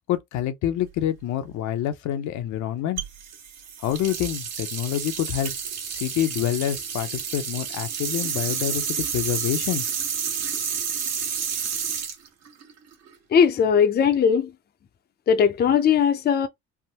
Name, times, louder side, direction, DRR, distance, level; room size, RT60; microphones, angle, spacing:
voice 1, 0.1-3.0 3.8-5.5 5.9-9.8, left 11 dB, 75° left, 0.7 m, -27 dB
sound 1, 3.0-13.1, right 7 dB, 60° right, 1.3 m, -30 dB
voice 2, 13.3-14.5 15.3-16.5, left 7 dB, 35° left, 0.5 m, -19 dB
3.4 x 2.1 x 2.8 m
cardioid pair, 100°, 29 cm